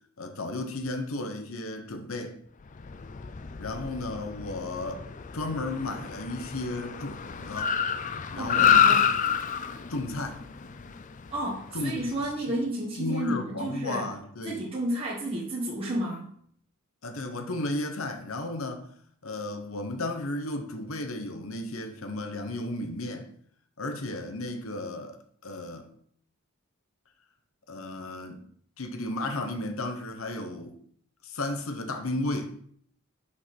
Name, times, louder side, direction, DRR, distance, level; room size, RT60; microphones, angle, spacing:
voice 1, 0.2-2.4 3.6-5.0 5.3-7.7 8.3-9.1 9.9-10.4 11.7-12.5 13.0-14.6 17.0-18.9 19.2-23.3 23.8-25.2 25.4-25.9 27.7-28.4 28.8-30.8 31.2-32.6, left 2 dB, 70° left, 1.1 m, -34 dB
Car, 2.7-12.3, left 8 dB, 35° left, 0.4 m, -28 dB
voice 2, 8.4-9.1 11.3-14.1 14.4-16.3, right 1 dB, 25° right, 1.5 m, -31 dB
5.9 x 5.6 x 6.0 m
head